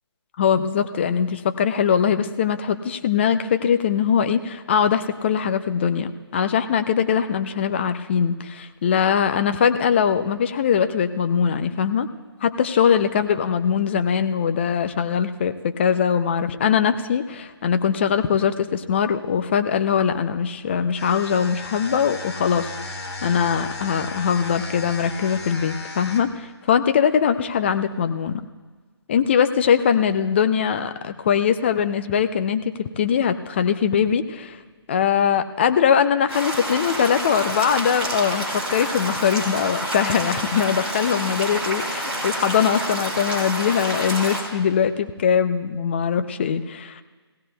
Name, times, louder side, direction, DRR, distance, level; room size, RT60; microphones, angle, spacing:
voice 1, 0.4-12.1 12.4-22.7 23.2-28.4 29.1-34.6 34.9-47.0, left 7 dB, 25° left, 9 dB, 0.5 m, -21 dB
Hair Trimmer, 20.9-26.4, left 3 dB, 70° left, 2.0 m, -35 dB
sound 1, 36.3-44.4, equal, 10° right, 2.2 m, -28 dB
20.5 x 16.5 x 2.3 m, 1.4 s
figure-of-eight pair, 155°, 14 cm